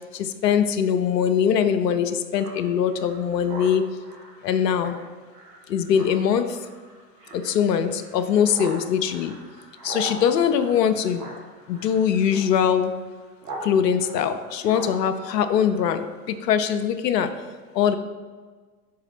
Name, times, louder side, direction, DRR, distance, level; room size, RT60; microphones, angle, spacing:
voice 1, 0.4-3.8 4.4-4.9 5.7-6.5 7.5-9.3 9.8-11.2 11.7-12.9 13.6-17.3 17.8-18.0, left 8 dB, 85° left, 10 dB, 0.7 m, -22 dB
Speech synthesizer, 2.4-13.7 14.0-16.2, right 2 dB, 75° right, 1.9 m, -41 dB
5.0 x 4.7 x 5.9 m, 1.4 s
hypercardioid pair, 95°, 48 cm